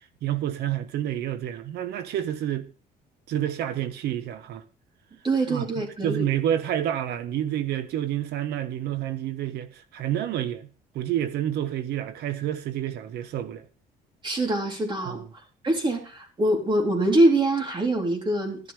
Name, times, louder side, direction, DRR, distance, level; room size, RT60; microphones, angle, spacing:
voice 1, 0.2-2.7 3.3-4.6 5.5-10.7 10.9-13.7 15.0-15.3, right 11 dB, 75° right, 1.2 m, -29 dB
voice 2, 5.2-6.3 14.2-15.2 15.6-18.6, right 1 dB, 30° right, 3.6 m, -24 dB
12.5 x 11.0 x 3.4 m
cardioid pair, 110°, 17 cm